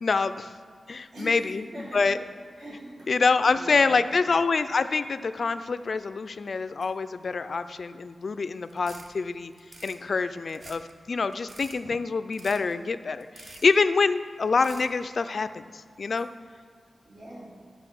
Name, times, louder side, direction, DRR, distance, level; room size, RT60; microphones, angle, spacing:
voice 1, 0.0-0.5 0.9-2.2 3.1-9.5 9.8-10.8 11.1-16.3, left 4 dB, 50° left, 11 dB, 0.4 m, -26 dB
voice 2, 1.1-1.4 1.7-2.2 2.6-3.1 3.5-4.1 17.0-17.5, right 1 dB, 75° right, -6 dB, 2.7 m, -41 dB
sound 1, 8.7-9.1 9.5-10.0 10.5-10.9 11.3-11.8 12.3-12.7 13.2-13.8 14.5-14.9, right 2 dB, 55° right, 0.9 m, -47 dB
12.0 x 5.2 x 6.0 m, 2.1 s
wide cardioid pair, 155°, 0 cm